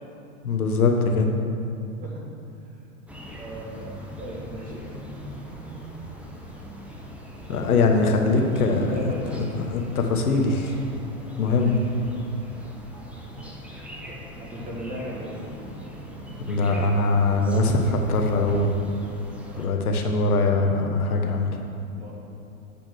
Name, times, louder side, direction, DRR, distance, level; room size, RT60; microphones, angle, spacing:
voice 1, 0.4-1.3 7.5-10.8 11.4-11.8 16.4-18.7 19.6-21.6, left 3 dB, 80° left, 3 dB, 1.4 m, -22 dB
sound 1, 3.1-19.7, equal, 5° right, 0.8 m, -40 dB
voice 2, 3.4-5.2 7.5-7.8 8.3-9.4 14.1-15.3 19.4-20.5 22.0-22.2, equal, 20° right, -3 dB, 2.0 m, -38 dB
8.6 x 6.1 x 6.4 m, 2.6 s
hypercardioid pair, 115°, 44 cm